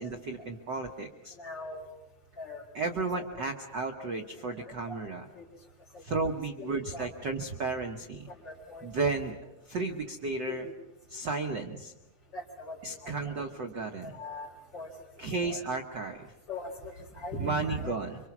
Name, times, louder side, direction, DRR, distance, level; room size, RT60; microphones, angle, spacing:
voice 1, 0.0-1.3 2.7-5.3 6.0-8.3 8.8-9.4 9.7-10.7 11.1-11.9 12.8-14.2 15.2-16.3 17.4-18.2, right 3 dB, 55° right, 4 dB, 1.3 m, -33 dB
voice 2, 1.4-1.9 2.4-2.6 3.9-4.1 4.3-4.5 4.9-5.0 5.4-5.5 6.6-7.1 7.4-7.5 8.4-8.9 10.5-10.6 12.3-12.8 13.0-13.4 14.0-14.5 14.7-14.9 15.4-15.6 16.5-17.9, left 1 dB, 40° left, 1 dB, 3.9 m, -40 dB
26.0 x 25.0 x 6.0 m, 0.99 s
omnidirectional pair, 3.3 m